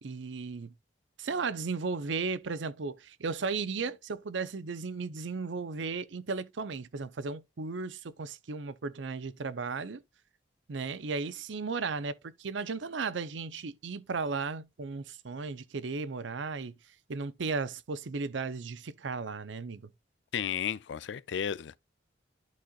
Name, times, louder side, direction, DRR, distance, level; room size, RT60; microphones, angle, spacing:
voice 1, 0.0-0.7 1.2-10.0 10.7-16.7 17.1-19.9, right 4 dB, 75° right, 0.6 m, -35 dB
voice 2, 20.3-21.8, left 8 dB, 70° left, 0.4 m, -33 dB
11.5 x 4.2 x 2.4 m
head